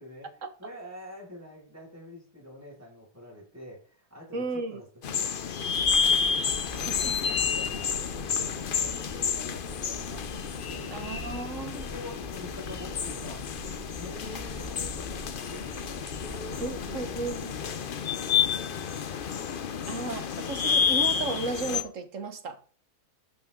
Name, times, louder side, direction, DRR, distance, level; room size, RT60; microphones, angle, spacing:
voice 1, 0.0-0.3 0.6-4.9 6.5-10.3 10.7-11.2 11.5-13.6 13.9-15.2 15.5-15.7 16.2-19.0, left 1 dB, 10° right, 5.7 m, -46 dB
voice 2, 4.3-4.8 6.7-7.1 10.9-11.9 16.6-17.6 19.9-22.6, right 3 dB, 55° right, 1.5 m, -34 dB
sound 1, 5.0-21.8, left 7 dB, 50° left, 0.6 m, -30 dB
sound 2, 6.5-17.4, right 1 dB, 25° right, 2.0 m, -44 dB
12.5 x 7.7 x 3.7 m
omnidirectional pair, 1.7 m